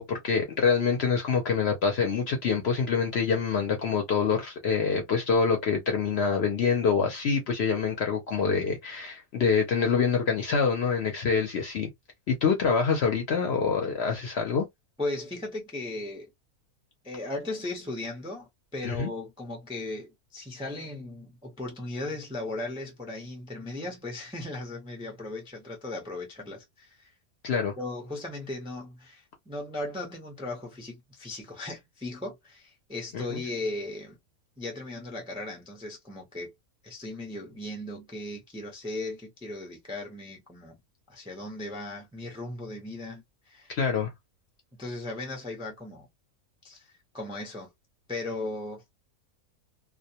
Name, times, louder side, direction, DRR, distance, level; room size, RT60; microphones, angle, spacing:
voice 1, 0.0-11.9 12.3-14.6 18.8-19.1 27.4-27.7 33.1-33.4 43.7-44.1, left 5 dB, 60° left, 0.7 m, -26 dB
voice 2, 15.0-16.3 17.0-27.1 27.8-34.2 34.6-36.5 36.8-40.8 41.1-43.7 44.8-46.1 46.6-47.7 48.1-49.0, left 2 dB, 5° right, 0.4 m, -37 dB
2.3 x 2.2 x 2.7 m
omnidirectional pair, 1.5 m